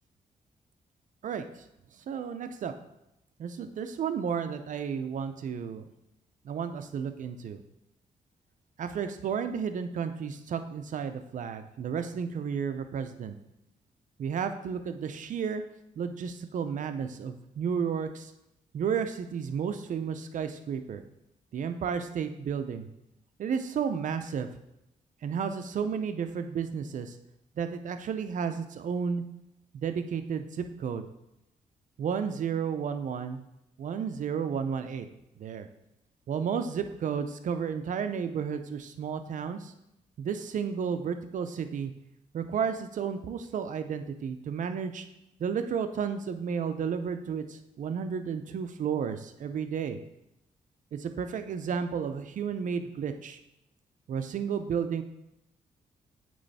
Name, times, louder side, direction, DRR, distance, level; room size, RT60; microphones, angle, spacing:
voice 1, 2.1-2.7 3.4-5.8 6.5-7.6 8.8-13.3 14.2-15.6 16.0-18.3 18.7-21.0 21.5-22.9 23.4-24.5 25.2-27.1 27.6-29.2 29.7-31.0 32.0-33.4 33.8-35.1 35.4-35.7 36.3-39.7 40.2-41.9 42.3-45.1 45.4-47.4 47.8-50.0 50.9-53.4 54.1-55.0, right 7 dB, 65° right, 8 dB, 0.6 m, -32 dB
8.7 x 3.1 x 4.1 m, 0.85 s
cardioid pair, 95°, 14 cm